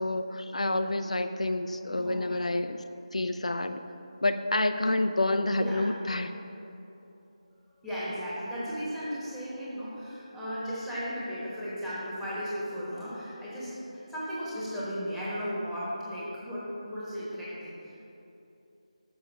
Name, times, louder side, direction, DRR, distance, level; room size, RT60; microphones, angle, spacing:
voice 1, 0.0-2.8 3.1-3.8 4.2-6.3, left 2 dB, 85° left, 8 dB, 0.4 m, -28 dB
voice 2, 1.9-2.4 5.5-5.8 7.8-18.0, equal, ahead, -11 dB, 1.1 m, -36 dB
6.6 x 5.4 x 5.5 m, 2.9 s
figure-of-eight pair, 165°, 4 cm